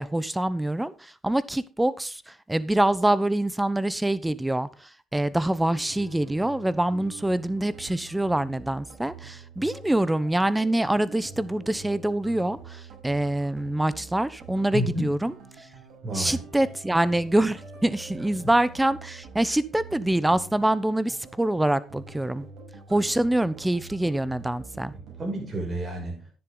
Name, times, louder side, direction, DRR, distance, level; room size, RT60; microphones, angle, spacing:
voice 1, 0.0-4.7 5.1-15.3 16.1-22.5 22.9-24.9, right 1 dB, 10° right, 0.9 m, -25 dB
sound 1, 5.7-25.6, right 4 dB, 80° right, 5.8 m, -46 dB
voice 2, 14.7-15.1 16.0-16.4 18.4-18.5 24.9-26.2, equal, 40° right, 6.9 m, -31 dB
10.5 x 10.0 x 3.9 m
cardioid pair, 90°, 0 cm